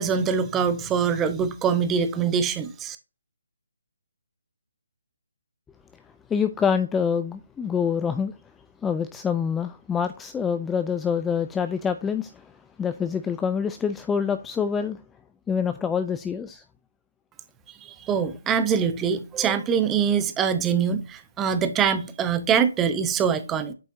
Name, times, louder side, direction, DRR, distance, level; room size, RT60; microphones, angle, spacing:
voice 1, 0.0-3.0 17.8-23.7, right 7 dB, 10° right, 0.7 m, -24 dB
voice 2, 6.3-8.3 8.8-15.0 15.5-16.6, left 7 dB, 10° left, 0.3 m, -26 dB
8.2 x 5.4 x 2.6 m
figure-of-eight pair, 155°, 0 cm